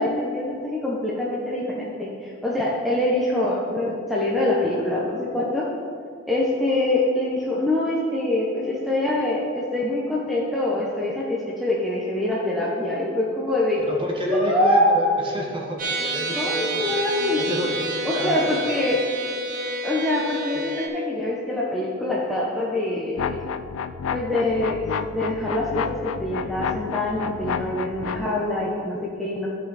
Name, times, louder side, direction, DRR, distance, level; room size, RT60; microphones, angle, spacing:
voice 1, 0.0-5.7 6.3-13.8 14.3-14.9 16.3-17.4 18.0-19.0 19.8-23.4 24.1-24.8 25.1-29.5, left 1 dB, ahead, -5 dB, 0.9 m, -24 dB
voice 2, 13.9-18.7 20.5-20.6, equal, 25° right, -1 dB, 1.3 m, -29 dB
sound 1, 15.8-20.9, right 2 dB, 40° right, 2.0 m, -29 dB
sound 2, 23.2-28.3, left 6 dB, 85° left, 0.4 m, -30 dB
14.0 x 5.6 x 4.1 m, 2.2 s
head